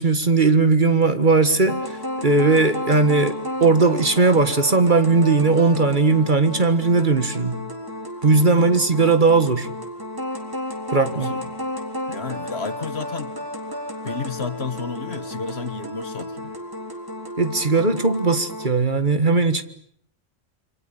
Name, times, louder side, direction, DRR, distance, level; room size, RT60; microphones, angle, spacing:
voice 1, 0.0-7.6 8.2-9.7 10.9-11.4 17.4-19.6, right 3 dB, 40° right, 1.7 m, -18 dB
sound 1, 1.7-18.7, left 1 dB, 15° right, 3.7 m, -32 dB
voice 2, 11.0-11.4 12.1-13.3 14.0-16.6, left 4 dB, 50° left, 1.7 m, -32 dB
28.0 x 25.0 x 8.3 m
omnidirectional pair, 1.4 m